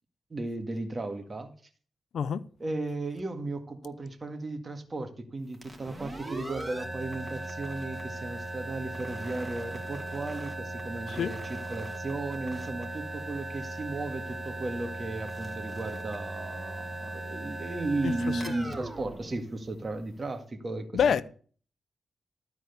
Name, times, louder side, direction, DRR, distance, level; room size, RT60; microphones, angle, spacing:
voice 1, 0.3-1.5 2.6-21.2, right 2 dB, 35° right, 2.0 m, -35 dB
sound 1, 5.5-20.2, right 1 dB, 15° right, 2.7 m, -38 dB
voice 2, 18.0-18.7 20.9-21.2, left 7 dB, 75° left, 0.6 m, -28 dB
13.0 x 4.8 x 8.1 m
cardioid pair, 60°, 0 cm